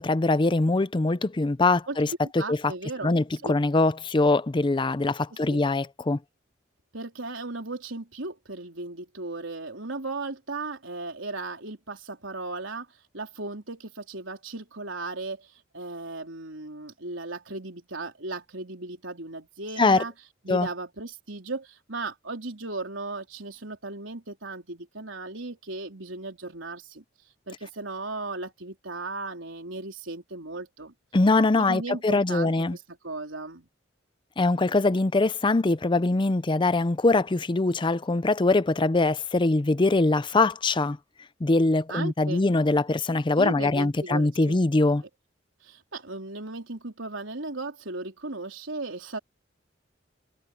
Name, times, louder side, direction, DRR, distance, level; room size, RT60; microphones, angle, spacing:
voice 1, 0.0-2.1 2.3-2.6 3.0-6.2 19.8-20.0 20.5-20.7 31.1-32.8 34.4-41.0 41.4-45.0, left 2 dB, 25° left, 0.5 m, -23 dB
voice 2, 2.2-3.5 5.3-5.6 6.9-12.9 13.1-20.1 20.4-27.0 27.5-30.9 31.6-33.7 41.9-42.4 43.4-44.6 45.6-49.2, right 2 dB, 85° right, 4.0 m, -36 dB
head